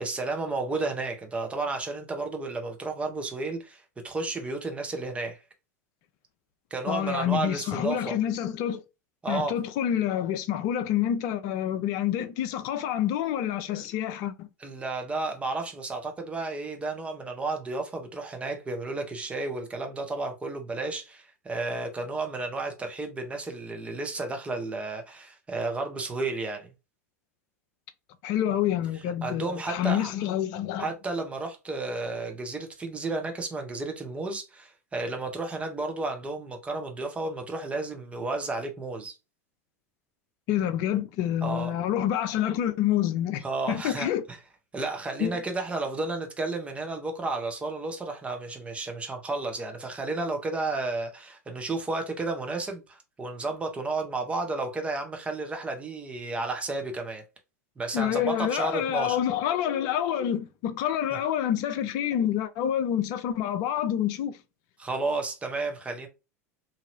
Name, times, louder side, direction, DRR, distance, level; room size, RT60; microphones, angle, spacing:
voice 1, 0.0-5.4 6.7-8.2 9.2-9.5 13.7-13.9 14.6-26.7 29.2-30.1 30.8-39.2 41.4-41.7 43.4-44.1 44.7-57.2 57.8-59.2 64.8-66.1, right 3 dB, 15° right, 0.9 m, -32 dB
voice 2, 6.9-8.8 9.3-14.5 28.2-30.9 40.5-44.2 45.2-45.3 57.9-64.4, left 10 dB, 50° left, 0.5 m, -27 dB
2.9 x 2.7 x 2.6 m
figure-of-eight pair, 80°, 9 cm